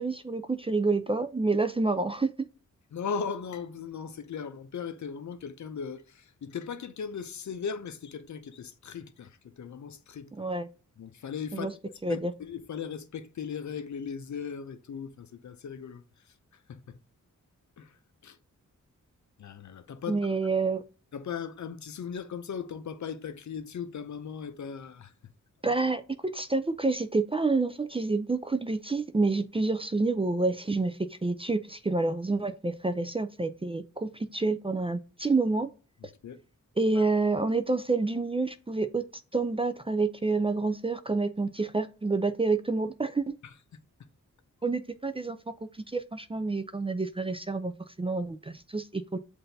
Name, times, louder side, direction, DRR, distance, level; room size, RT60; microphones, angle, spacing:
voice 1, 0.0-2.5 10.4-10.7 11.5-11.7 12.0-12.3 20.1-20.8 25.6-35.7 36.8-39.0 39.3-43.4 44.6-45.4 45.9-47.7 48.0-49.2, right 3 dB, 20° right, 0.4 m, -28 dB
voice 2, 2.9-10.3 11.0-16.0 16.7-17.0 17.8-17.9 18.2-18.4 19.4-20.2 21.1-25.1 36.0-36.4 37.0-37.1 43.4-43.5, left 6 dB, 60° left, 0.6 m, -38 dB
7.6 x 2.6 x 2.6 m
cardioid pair, 55°, 32 cm